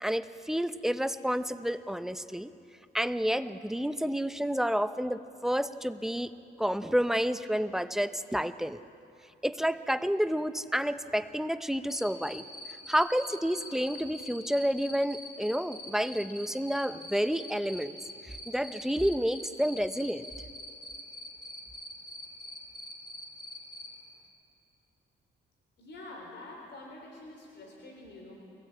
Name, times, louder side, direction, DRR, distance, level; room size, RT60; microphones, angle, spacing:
voice 1, 0.0-2.5 2.9-6.3 6.6-8.8 9.4-12.4 12.9-18.0 18.2-20.3, equal, ahead, 11 dB, 0.7 m, -30 dB
Cricket, 11.9-23.9, left 1 dB, 20° left, 3.2 m, -43 dB
voice 2, 25.8-28.3, left 2 dB, 60° left, 0 dB, 3.9 m, -46 dB
23.0 x 17.0 x 8.5 m, 2.6 s
cardioid pair, 90°, 20 cm